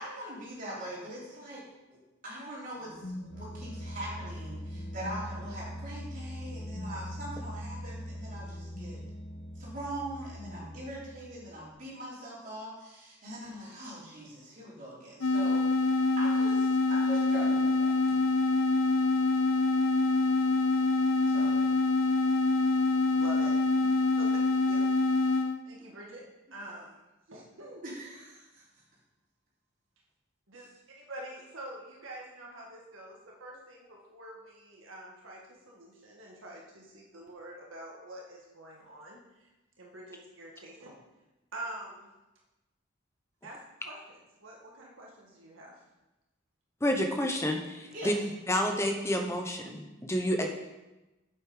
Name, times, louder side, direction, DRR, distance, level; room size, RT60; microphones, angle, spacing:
voice 1, 0.0-1.6 1.9-2.0 2.2-9.0 9.6-18.0 21.2-21.7 25.8-25.9 27.8-28.6 30.5-30.7 47.9-48.3, right 1 dB, 40° right, -7 dB, 3.8 m, -42 dB
sound 1, 2.8-11.6, equal, 60° left, 1.4 m, -41 dB
sound 2, 15.2-25.6, left 3 dB, 90° left, 0.5 m, -25 dB
voice 2, 23.1-23.5 24.2-24.3 24.7-24.8 25.6-26.2 26.5-26.9 27.3-27.8 30.5-30.7 31.0-35.4 35.7-39.2 39.8-41.0 41.5-42.1 43.4-43.6 43.8-45.7, right 1 dB, 80° right, -2 dB, 1.8 m, -46 dB
voice 3, 46.8-48.1 48.5-50.5, equal, 15° left, 3 dB, 0.9 m, -29 dB
8.2 x 8.1 x 5.0 m, 1.0 s
head